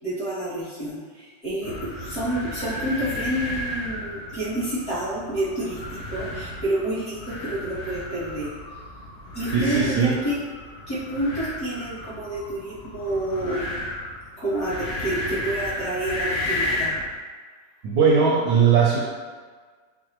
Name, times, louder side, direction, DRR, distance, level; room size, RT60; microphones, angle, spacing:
voice 1, 0.0-8.5 9.3-10.4 10.9-13.6 14.4-16.9, right 1 dB, 45° left, -15 dB, 1.3 m, -29 dB
sound 1, 1.6-17.1, left 1 dB, 75° left, 1.3 m, -33 dB
voice 2, 9.5-10.1 17.8-19.0, right 6 dB, 75° right, -3 dB, 1.1 m, -19 dB
4.8 x 2.0 x 2.9 m, 1.5 s
omnidirectional pair, 2.0 m